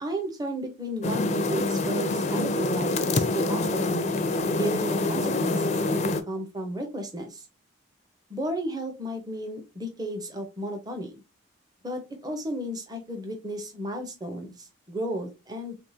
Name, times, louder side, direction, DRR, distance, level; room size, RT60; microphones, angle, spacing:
voice 1, 0.0-4.1 4.6-7.4 8.3-11.2 11.8-15.7, right 1 dB, 20° right, 4 dB, 0.7 m, -33 dB
sound 1, 1.0-6.2, left 2 dB, 35° left, 0.4 m, -26 dB
3.5 x 3.3 x 2.8 m, 0.25 s
head